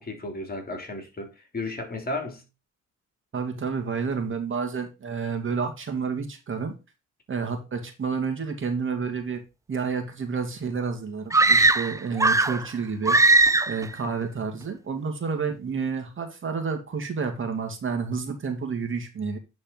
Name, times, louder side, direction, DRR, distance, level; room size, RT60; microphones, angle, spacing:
voice 1, 0.0-2.4, left 2 dB, 30° left, 3.0 m, -34 dB
voice 2, 3.3-6.7 7.3-9.4 9.7-13.2 13.7-19.4, right 5 dB, 40° right, 2.2 m, -30 dB
sound 1, 11.3-12.7 13.1-13.9, right 3 dB, 10° right, 0.5 m, -19 dB
10.0 x 4.3 x 3.9 m
cardioid pair, 90°, 30 cm